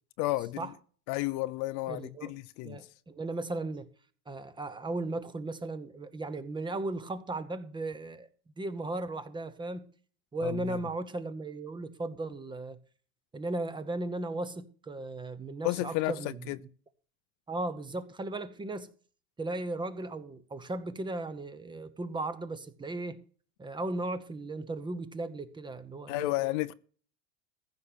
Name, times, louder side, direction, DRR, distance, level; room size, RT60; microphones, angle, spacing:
voice 1, 0.2-0.7 1.1-2.8 10.4-10.7 15.6-16.1 16.5-16.6 26.1-26.7, left 20 dB, 55° left, 0.6 m, -32 dB
voice 2, 1.9-2.3 2.6-3.9 4.3-8.3 8.6-9.9 10.3-12.8 13.3-16.5 17.5-18.9 19.4-23.2 23.6-26.3, right 2 dB, 15° right, 1.0 m, -36 dB
15.0 x 5.8 x 6.8 m
supercardioid pair, 135°, 36 cm